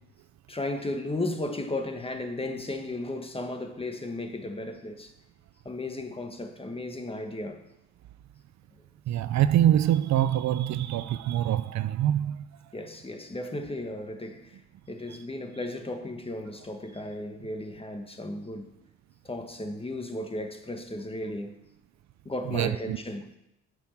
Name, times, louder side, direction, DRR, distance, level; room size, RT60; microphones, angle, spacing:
voice 1, 0.5-5.1 5.6-7.6 12.7-14.6 14.9-18.7 19.2-21.5 22.2-23.2, left 2 dB, 20° left, 1.5 m, -35 dB
voice 2, 9.1-12.7 15.1-15.2 22.5-23.0, right 11 dB, 65° right, 0.5 m, -25 dB
8.3 x 6.3 x 7.3 m
cardioid pair, 75°, 30 cm